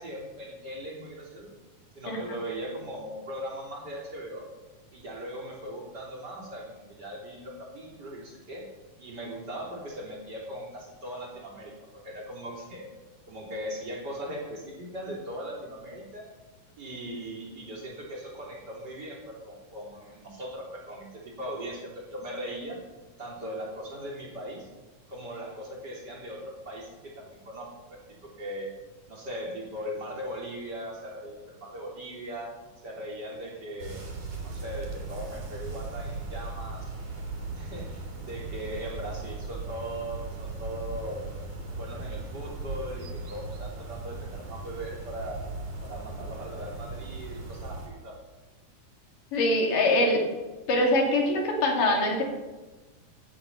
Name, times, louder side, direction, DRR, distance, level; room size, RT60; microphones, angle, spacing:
voice 1, 0.0-1.5 2.0-4.5 4.9-8.6 9.0-12.9 13.3-16.3 16.8-22.8 23.2-24.7 25.1-28.7 29.1-32.5 32.8-34.0 34.4-36.9 37.5-41.3 41.8-45.4 45.8-48.2, equal, 30° right, -2 dB, 3.7 m, -39 dB
sound 1, 33.8-47.9, right 3 dB, 65° right, 4.7 m, -38 dB
voice 2, 49.3-50.2 50.7-52.2, left 1 dB, 80° left, 1 dB, 4.3 m, -23 dB
16.5 x 10.5 x 5.7 m, 1.2 s
omnidirectional pair, 3.7 m